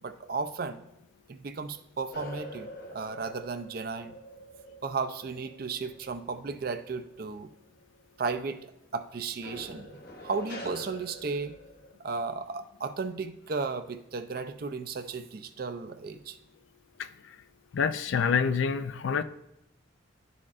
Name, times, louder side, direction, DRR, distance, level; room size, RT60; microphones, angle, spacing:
voice 1, 0.0-0.8 1.3-4.2 4.8-7.5 8.2-8.6 8.9-9.9 10.2-11.6 12.0-16.4, right 4 dB, 50° right, 9 dB, 0.4 m, -34 dB
sound 1, 2.1-7.0 7.4-7.8 9.4-11.9, equal, 50° left, 0.9 m, -45 dB
voice 2, 17.7-19.2, left 6 dB, 75° left, 13 dB, 0.4 m, -27 dB
10.5 x 4.2 x 2.5 m, 0.85 s
head